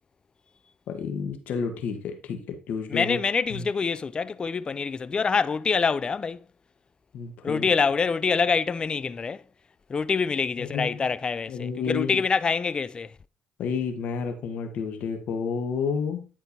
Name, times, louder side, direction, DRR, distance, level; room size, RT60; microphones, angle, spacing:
voice 1, 0.9-3.2 3.5-3.6 7.1-7.6 10.6-11.1 11.5-12.2 13.6-16.3, left 6 dB, 65° left, 1.3 m, -30 dB
voice 2, 2.9-6.5 7.4-9.4 9.9-13.2, left 5 dB, 35° left, 0.3 m, -26 dB
10.0 x 4.4 x 2.8 m
supercardioid pair, 65°, 3 cm